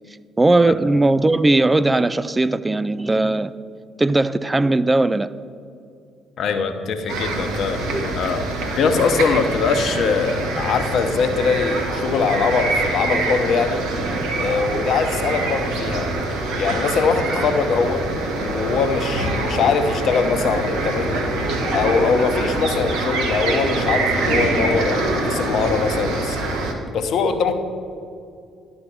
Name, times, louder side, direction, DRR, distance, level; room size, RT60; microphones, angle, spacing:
voice 1, 0.4-3.5 4.0-5.3 7.9-8.1, right 2 dB, 20° right, 15 dB, 0.3 m, -18 dB
voice 2, 6.4-8.4 8.8-13.8 14.4-16.1 16.5-18.1 18.4-21.1 21.7-26.4 26.9-27.5, left 5 dB, 60° left, 7 dB, 0.8 m, -22 dB
sound 1, 7.1-26.7, right 2 dB, 70° right, 1.1 m, -24 dB
11.5 x 4.3 x 7.0 m, 2.4 s
hypercardioid pair, 45°, 0 cm